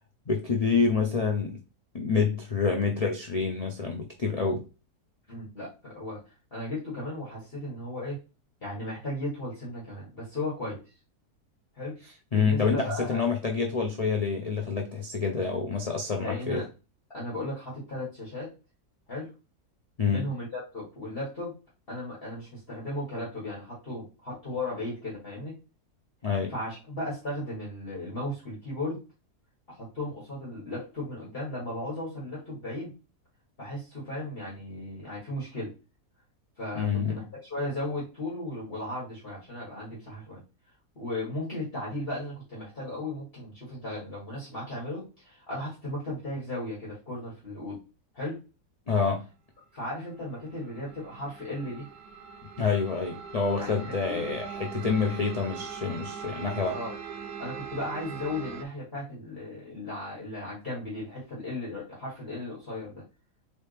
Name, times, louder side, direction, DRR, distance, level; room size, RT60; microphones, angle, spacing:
voice 1, 0.3-1.6 1.9-4.6 12.3-16.6 20.0-20.3 26.2-26.5 36.7-37.2 48.9-49.2 52.6-56.8, left 5 dB, 80° left, 0.3 m, -27 dB
voice 2, 5.3-8.2 8.6-10.8 11.8-12.0 12.3-13.2 16.2-16.6 17.1-18.5 19.1-19.3 20.1-21.6 21.9-25.5 26.5-29.0 29.7-32.9 33.6-35.7 36.6-40.4 41.0-47.8 48.1-48.4 49.7-51.9 53.6-54.2 56.7-56.9 57.4-63.0, left 1 dB, 40° left, 1.9 m, -36 dB
sound 1, 50.1-58.6, right 6 dB, 80° right, 1.2 m, -41 dB
4.2 x 3.3 x 3.3 m
omnidirectional pair, 1.7 m